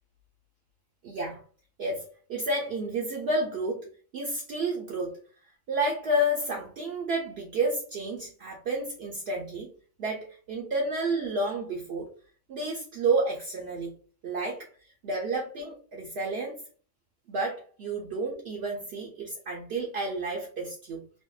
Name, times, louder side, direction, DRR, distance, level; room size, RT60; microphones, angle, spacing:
voice 1, 1.0-1.4 1.8-2.0 2.3-5.2 5.7-9.7 10.0-12.1 12.5-13.9 14.2-14.7 15.0-16.6 17.3-21.0, right 2 dB, 65° right, -2 dB, 0.7 m, -30 dB
2.6 x 2.1 x 2.2 m, 0.40 s
omnidirectional pair, 1.3 m